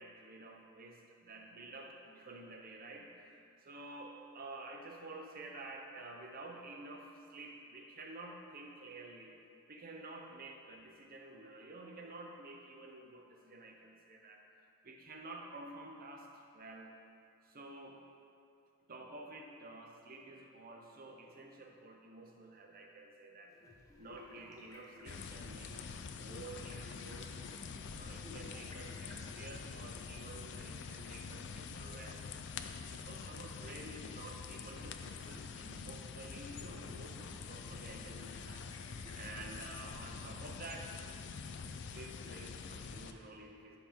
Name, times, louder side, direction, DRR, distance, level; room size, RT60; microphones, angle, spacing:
voice 1, 0.0-9.3 9.7-14.4 14.8-17.0 17.4-18.0 18.9-23.6 24.0-27.3 27.9-32.3 32.9-40.9 41.8-43.8, right 2 dB, 45° right, 2 dB, 0.8 m, -51 dB
sound 1, 23.5-42.5, left 2 dB, 15° left, 1.0 m, -59 dB
sound 2, 25.1-43.1, left 5 dB, 60° left, 0.4 m, -46 dB
10.5 x 4.8 x 3.6 m, 2.5 s
head